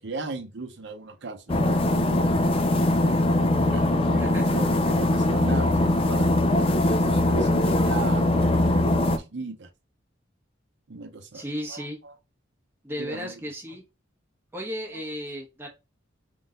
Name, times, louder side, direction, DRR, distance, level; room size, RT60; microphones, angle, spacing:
voice 1, 0.0-2.3 3.7-6.7 6.9-9.7 10.9-12.1 13.0-13.3 14.9-15.0, right 3 dB, 60° right, 0.7 m, -38 dB
sound 1, 1.5-9.2, left 1 dB, 30° left, 0.4 m, -22 dB
voice 2, 11.3-12.0 12.8-13.8 14.5-15.7, equal, 10° right, 1.3 m, -34 dB
3.7 x 2.5 x 3.8 m
head